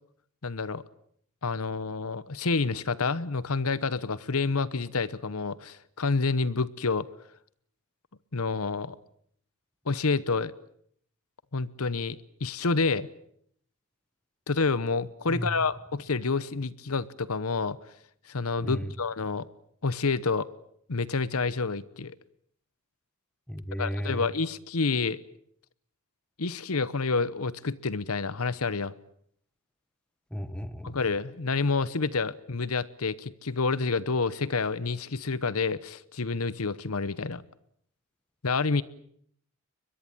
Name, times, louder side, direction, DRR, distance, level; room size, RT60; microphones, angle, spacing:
voice 1, 0.4-0.8 1.4-7.1 8.3-9.0 9.9-10.5 11.5-13.1 14.5-17.8 18.3-19.5 19.8-20.5 20.9-22.1 23.8-25.2 26.4-28.9 30.8-37.4 38.4-38.8, left 4 dB, 70° left, 18 dB, 1.0 m, -28 dB
voice 2, 18.6-18.9 23.5-24.3 30.3-31.0, equal, 5° left, 13 dB, 1.3 m, -34 dB
22.5 x 22.0 x 9.0 m, 0.67 s
head